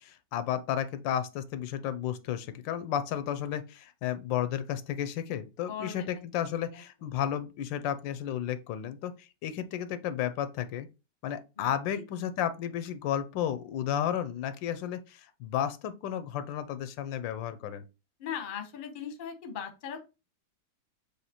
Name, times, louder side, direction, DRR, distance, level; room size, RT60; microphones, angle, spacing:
voice 1, 0.0-10.9 11.2-17.8, left 10 dB, 85° left, 1.3 m, -33 dB
voice 2, 5.6-6.1 6.7-6.8 11.6-12.0 18.2-20.0, left 8 dB, 40° left, 0.7 m, -39 dB
6.4 x 2.7 x 2.9 m
omnidirectional pair, 2.0 m